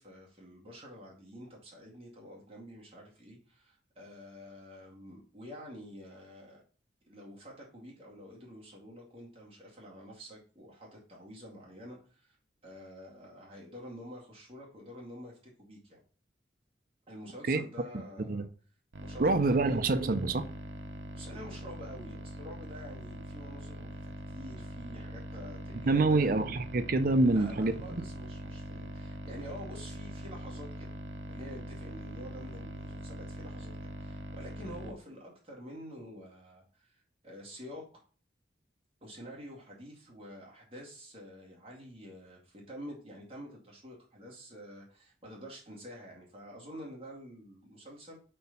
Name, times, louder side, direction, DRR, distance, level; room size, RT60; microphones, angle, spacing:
voice 1, 0.0-6.6 7.1-12.4 12.6-16.0 17.1-18.5 19.0-19.8 21.1-26.3 27.2-31.0 31.3-38.0 39.0-48.2, equal, 30° right, 2.2 m, -48 dB
sound 1, 18.9-34.9, right 1 dB, 80° right, 0.8 m, -42 dB
voice 2, 19.2-20.5 25.9-28.0, right 3 dB, 50° right, 0.5 m, -26 dB
5.2 x 4.4 x 5.3 m
head